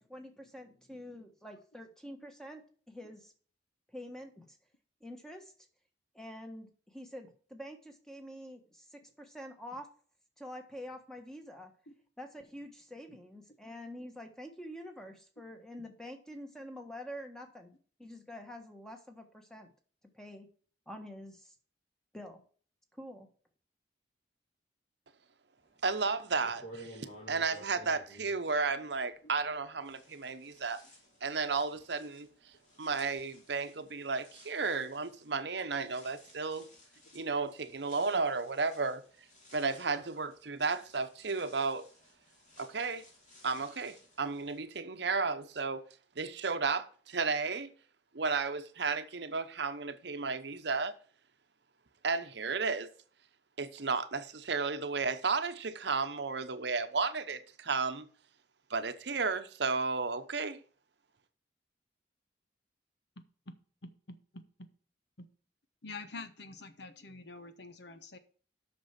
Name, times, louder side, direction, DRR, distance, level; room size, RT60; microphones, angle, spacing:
voice 1, 0.0-3.3 3.9-4.6 5.0-5.5 6.1-9.9 10.4-11.7 12.2-17.7 18.0-19.7 20.1-20.5 20.9-21.5 22.1-22.4 23.0-23.3, equal, 5° left, 1.4 m, -47 dB
voice 2, 25.8-30.8 31.2-32.3 32.8-36.7 37.1-39.0 39.5-41.9 42.6-43.0 43.4-45.8 46.2-47.7 48.1-50.9 52.0-52.9 53.6-58.1 58.7-60.6, right 4 dB, 65° right, 0.9 m, -33 dB
sound 1, 26.4-29.5 29.8-44.6, equal, 40° left, 3.3 m, -56 dB
voice 3, 63.8-64.2 65.2-65.3 65.8-68.2, left 3 dB, 65° left, 1.0 m, -46 dB
8.1 x 6.1 x 5.9 m
head